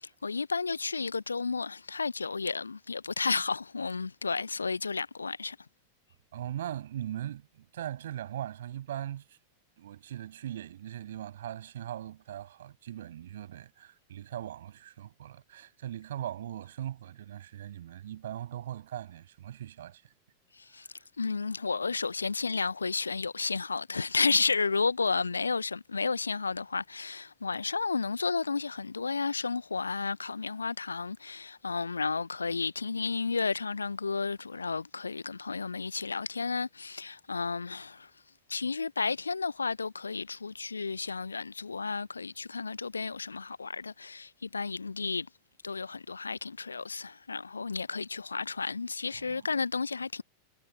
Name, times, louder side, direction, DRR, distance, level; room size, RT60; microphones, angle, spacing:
voice 1, 0.0-5.6 20.5-20.9 21.2-38.1 38.5-45.3 45.6-50.2, left 4 dB, 75° left, 1.0 m, -32 dB
voice 2, 6.3-9.4 9.8-20.0 20.8-20.9 49.1-49.6, right 11 dB, 60° right, 7.2 m, -40 dB
figure-of-eight pair, 90°, 0 cm